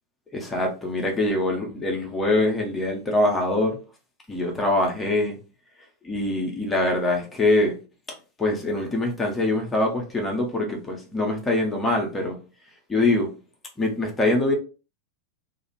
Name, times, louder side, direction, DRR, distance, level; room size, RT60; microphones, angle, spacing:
voice 1, 0.3-3.8 4.3-5.4 6.0-7.8 8.4-12.4 12.9-13.3 13.8-14.5, left 2 dB, 15° left, 0.8 m, -23 dB
2.4 x 2.3 x 3.0 m
figure-of-eight pair, 90°, 0 cm